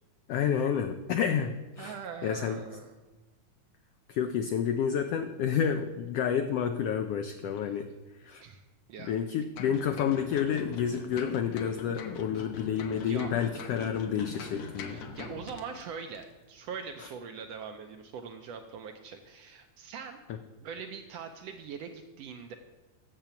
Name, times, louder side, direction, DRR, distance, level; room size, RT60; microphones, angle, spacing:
voice 1, 0.3-2.6 4.1-7.9 8.2-8.4 9.0-15.0 17.0-17.1, left 8 dB, 85° left, 7 dB, 1.3 m, -30 dB
voice 2, 1.8-2.9 8.4-8.6 8.9-9.1 12.4-12.5 13.0-13.3 14.5-20.2 20.6-22.6, right 6 dB, 75° right, 5 dB, 1.6 m, -42 dB
sound 1, 9.6-15.8 16.1-16.3, left 5 dB, 65° left, 1.8 m, -42 dB
8.9 x 7.7 x 7.0 m, 1.1 s
omnidirectional pair, 3.5 m